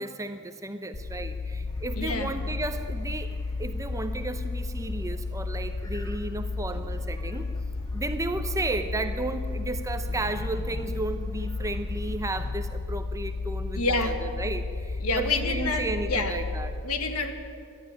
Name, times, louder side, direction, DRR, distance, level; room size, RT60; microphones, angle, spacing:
voice 1, 0.0-7.5 7.9-16.7, right 2 dB, 15° right, 8 dB, 0.7 m, -33 dB
sound 1, 0.9-16.8, left 3 dB, 40° left, 1.0 m, -33 dB
sound 2, 1.7-12.5, equal, 20° left, 1.3 m, -49 dB
voice 2, 1.9-2.3 5.0-5.1 6.7-6.8 13.8-14.1 15.0-16.3 16.8-17.3, left 3 dB, 75° left, 6 dB, 1.5 m, -28 dB
12.5 x 10.5 x 9.8 m, 2.3 s
head